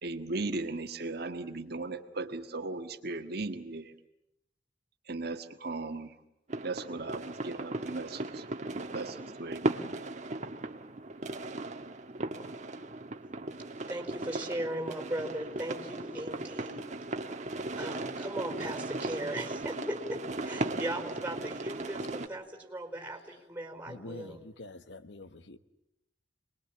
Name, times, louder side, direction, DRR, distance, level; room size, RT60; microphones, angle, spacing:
voice 1, 0.0-3.9 5.1-6.1 6.6-8.4 8.9-9.8, right 3 dB, 60° right, 6 dB, 1.6 m, -37 dB
sound 1, 6.5-22.3, right 2 dB, 40° right, 1.4 m, -37 dB
voice 2, 13.9-16.9 17.8-24.5, right 1 dB, 10° right, 3 dB, 4.9 m, -38 dB
voice 3, 23.9-25.6, left 2 dB, 65° left, 11 dB, 1.2 m, -46 dB
28.0 x 21.5 x 8.9 m, 0.81 s
head